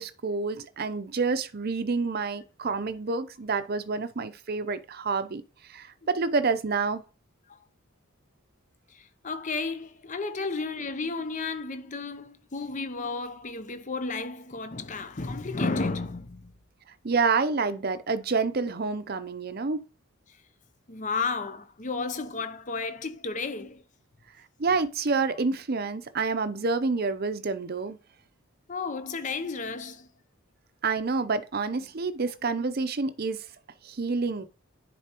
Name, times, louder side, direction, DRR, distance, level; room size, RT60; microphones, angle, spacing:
voice 1, 0.0-5.4 5.7-7.0 17.0-19.8 24.6-28.0 30.8-33.4 33.8-34.4, right 4 dB, 45° right, 0.6 m, -28 dB
voice 2, 8.9-16.5 20.3-20.4 20.9-23.8 28.7-30.1, left 4 dB, 35° left, 0.7 m, -33 dB
10.0 x 4.2 x 3.0 m
head